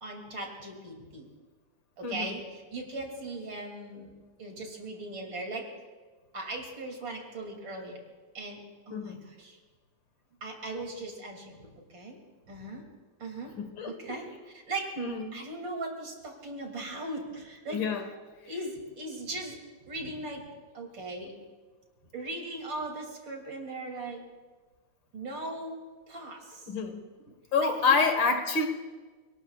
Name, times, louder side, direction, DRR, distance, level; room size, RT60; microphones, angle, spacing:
voice 1, 0.0-1.3 2.0-4.1 4.4-5.7 6.3-8.0 8.3-9.6 10.4-12.2 12.5-12.8 13.2-13.6 13.8-14.9 15.3-17.8 18.5-19.6 19.9-20.4 20.7-21.3 22.1-24.3 25.1-25.8 26.1-26.7 27.6-28.2, right 2 dB, 65° right, 1 dB, 3.5 m, -39 dB
voice 2, 8.9-9.2 13.6-13.9 15.0-15.3 17.7-18.0 26.7-27.0 27.5-28.7, left 4 dB, 70° left, 6 dB, 2.3 m, -27 dB
30.0 x 19.0 x 2.4 m, 1.4 s
omnidirectional pair, 2.2 m